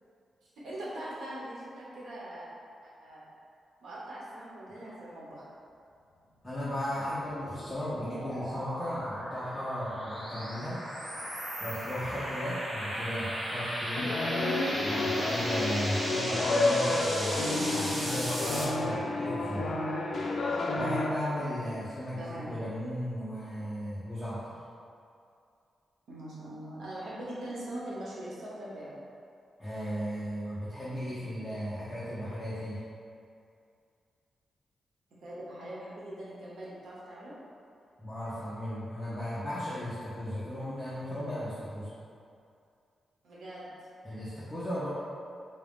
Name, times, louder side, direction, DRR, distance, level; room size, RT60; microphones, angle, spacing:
voice 1, 0.6-2.4 2.8-3.3 3.8-5.4 14.4-15.2 17.4-17.9 22.2-22.5 26.1-28.9 35.2-37.4 43.2-43.9, right 1 dB, 80° right, -7 dB, 0.9 m, -41 dB
voice 2, 6.4-10.8 11.6-14.1 14.8-19.7 20.7-24.4 29.6-32.8 38.0-41.9 44.0-44.9, equal, 5° left, -11 dB, 0.6 m, -36 dB
sound 1, 6.9-18.6, equal, 30° right, 0.7 m, -36 dB
sound 2, 13.9-21.1, left 2 dB, 50° left, 0.3 m, -30 dB
3.8 x 2.4 x 3.5 m, 2.5 s
wide cardioid pair, 170°, 0 cm